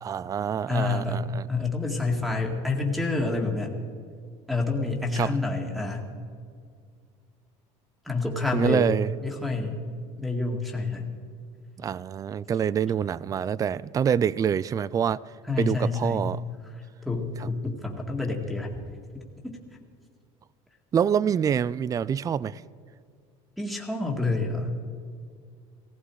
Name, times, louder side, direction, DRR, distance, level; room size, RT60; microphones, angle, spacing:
voice 1, 0.0-1.5 5.2-5.4 8.5-9.1 11.8-15.2 15.6-16.4 17.4-17.5 20.9-22.6, right 8 dB, 25° right, 0.3 m, -26 dB
voice 2, 0.7-1.2 1.5-3.8 4.5-6.1 8.1-8.9 9.2-9.8 10.2-11.1 15.5-16.2 17.1-18.7 23.6-24.7, left 3 dB, ahead, 2.0 m, -28 dB
17.5 x 16.0 x 4.8 m
cardioid pair, 125°, 15 cm